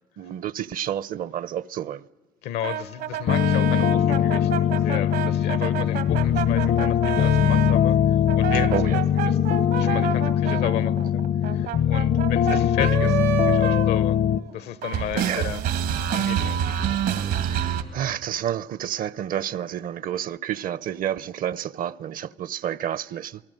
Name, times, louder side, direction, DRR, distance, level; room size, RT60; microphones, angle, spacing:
voice 1, 0.2-2.1 8.7-9.0 15.1-15.5 17.4-23.4, right 10 dB, 55° right, 0.7 m, -30 dB
voice 2, 2.4-9.4 9.7-15.6 16.1-17.0, left 12 dB, 75° left, 0.9 m, -33 dB
sound 1, 2.6-7.8 8.3-14.6 14.8-17.8, right 10 dB, 85° right, 2.1 m, -28 dB
sound 2, 3.3-14.4, left 9 dB, 55° left, 0.6 m, -21 dB
28.0 x 18.5 x 7.7 m
cardioid pair, 110°, 17 cm